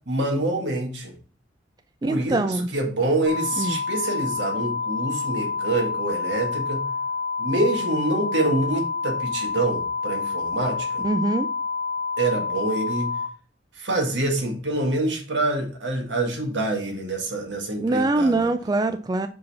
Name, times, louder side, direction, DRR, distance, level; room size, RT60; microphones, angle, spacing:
voice 1, 0.1-1.1 2.0-6.8 7.4-11.0 12.2-13.1 13.8-18.5, right 2 dB, 80° right, 1 dB, 1.9 m, -26 dB
voice 2, 2.0-2.7 3.6-3.8 11.0-11.5 17.8-19.3, right 2 dB, 20° right, 9 dB, 0.3 m, -23 dB
sound 1, 3.3-13.3, left 4 dB, 25° left, 1.1 m, -28 dB
5.6 x 5.2 x 4.1 m, 0.42 s
head